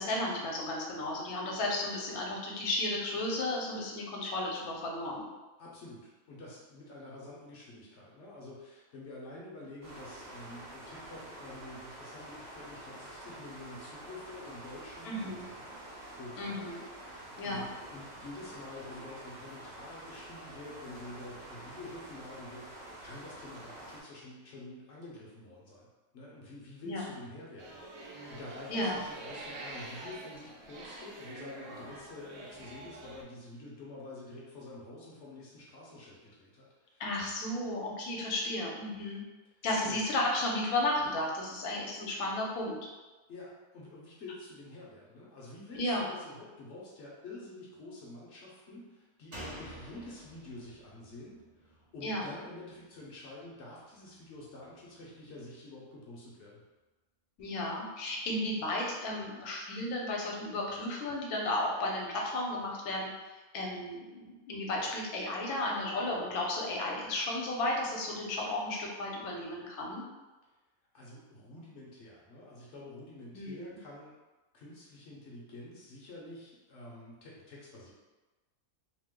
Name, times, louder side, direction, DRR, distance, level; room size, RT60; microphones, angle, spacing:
voice 1, 0.0-5.3 15.0-15.4 16.4-16.8 17.4-17.6 26.8-27.0 28.7-29.0 37.0-39.2 39.6-42.8 45.7-46.0 52.0-52.2 57.4-70.0 73.3-73.7, left 1 dB, 80° left, -1 dB, 1.1 m, -34 dB
voice 2, 5.6-15.8 16.1-25.9 26.1-37.2 39.6-40.0 43.3-56.6 70.9-74.1 74.5-77.9, left 2 dB, 60° left, -4 dB, 0.9 m, -48 dB
sound 1, 9.8-24.0, right 1 dB, 60° right, 1.2 m, -48 dB
sound 2, 27.6-33.2, right 2 dB, 90° right, 1.1 m, -46 dB
Slam, 49.3-52.8 53.1-53.2, right 1 dB, 35° right, 0.7 m, -49 dB
2.9 x 2.0 x 3.5 m, 1.2 s
omnidirectional pair, 1.5 m